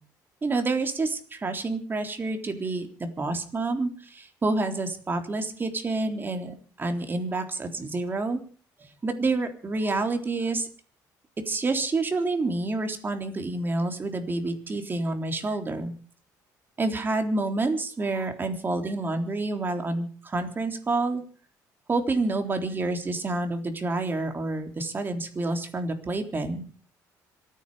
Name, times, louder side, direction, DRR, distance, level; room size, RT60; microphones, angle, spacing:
voice 1, 0.4-8.4 9.0-10.7 11.4-15.9 16.8-21.2 21.9-26.6, right 3 dB, 30° right, 6 dB, 3.6 m, -28 dB
26.5 x 9.7 x 5.0 m, 0.41 s
cardioid pair, 100°, 8 cm